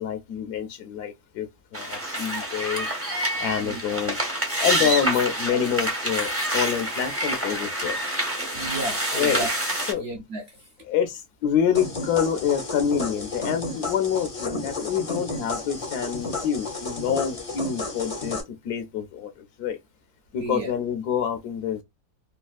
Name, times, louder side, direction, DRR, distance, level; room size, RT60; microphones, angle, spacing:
voice 1, 0.0-1.5 1.7-2.9 3.4-4.2 4.6-8.0 9.1-9.4 9.9-10.0 10.8-18.4 18.6-19.3 19.6-19.8 20.3-21.8, left 8 dB, 75° left, 1.1 m, -26 dB
sound 1, 1.7-9.9, right 1 dB, 20° right, 0.4 m, -27 dB
voice 2, 8.5-9.5 10.0-10.7 20.4-20.7, right 2 dB, 70° right, 0.6 m, -33 dB
sound 2, 11.7-18.4, left 2 dB, 40° left, 0.4 m, -32 dB
3.2 x 2.3 x 2.3 m
omnidirectional pair, 1.7 m